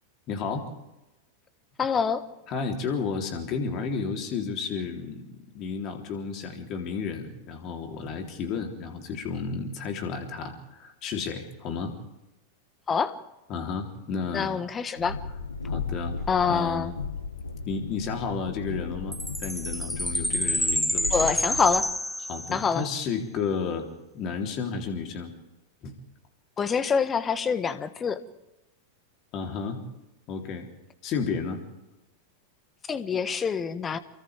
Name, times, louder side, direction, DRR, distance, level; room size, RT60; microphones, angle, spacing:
voice 1, 0.3-0.7 2.5-11.9 13.5-14.6 15.7-16.2 16.5-16.9 17.7-21.3 22.3-23.9 24.1-25.3 25.8-26.0 29.3-29.8 30.3-30.7 31.0-31.6, left 5 dB, 35° left, 4 dB, 3.7 m, -32 dB
voice 2, 1.8-2.3 12.9-13.2 14.3-15.2 16.3-16.9 21.1-21.9 22.5-22.8 26.6-28.2 32.9-34.0, left 6 dB, 20° left, 13 dB, 1.4 m, -26 dB
Train, 15.0-21.8, left 4 dB, 75° left, 1.6 m, -35 dB
Chime, 19.1-22.8, equal, ahead, 1.1 m, -28 dB
29.5 x 24.0 x 3.7 m, 0.98 s
figure-of-eight pair, 90°, 0 cm